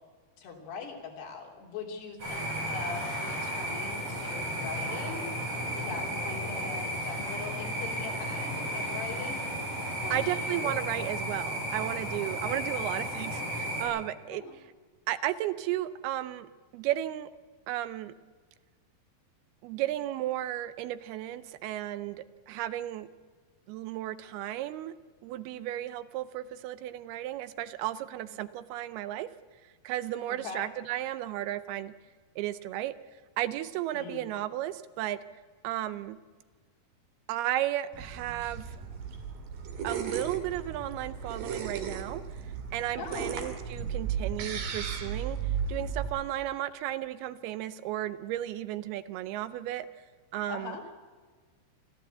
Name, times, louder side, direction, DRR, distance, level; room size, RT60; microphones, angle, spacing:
voice 1, 0.4-5.3 5.7-9.4 10.0-10.9 12.4-12.6 14.3-14.6 30.3-30.7 33.9-34.2 42.9-43.4 50.5-50.8, left 5 dB, 80° left, 1 dB, 5.1 m, -41 dB
sound 1, 2.2-13.8, equal, 40° right, 7.8 m, -34 dB
voice 2, 10.1-14.4 15.1-17.3 17.7-18.1 19.6-23.1 23.7-24.9 25.2-29.3 29.8-31.9 32.4-32.9 33.4-35.2 35.6-36.2 37.3-38.8 39.8-49.9 50.3-50.8, right 13 dB, 80° right, 15 dB, 2.5 m, -34 dB
sound 2, 37.9-46.1, right 6 dB, 60° right, 3.7 m, -35 dB
25.5 x 14.5 x 8.1 m, 1.5 s
omnidirectional pair, 4.7 m